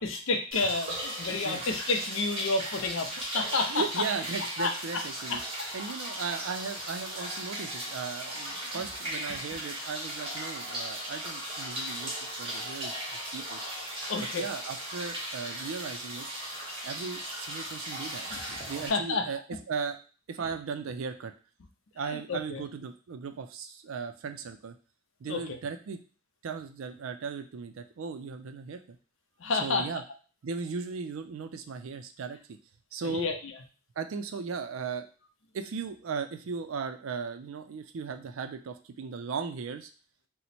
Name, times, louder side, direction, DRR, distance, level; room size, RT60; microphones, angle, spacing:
voice 1, 0.0-3.8 4.6-5.0 5.3-5.7 8.7-8.9 14.1-14.4 18.3-18.6 18.9-19.3 22.1-22.6 25.3-25.6 29.4-29.9 33.0-33.4, left 3 dB, 70° left, 4 dB, 0.6 m, -30 dB
sound 1, 0.5-18.9, right 1 dB, 25° right, 0.8 m, -37 dB
voice 2, 3.7-5.4 5.7-12.1 12.4-13.0 13.3-13.6 14.2-16.3 16.8-18.3 18.7-19.4 19.7-20.0 20.3-21.3 22.0-24.8 25.2-26.0 26.4-29.0 29.6-30.0 30.4-32.6 32.9-33.3 34.0-35.1 35.5-39.9, right 5 dB, 75° right, 8 dB, 0.4 m, -37 dB
2.9 x 2.1 x 4.1 m, 0.36 s
head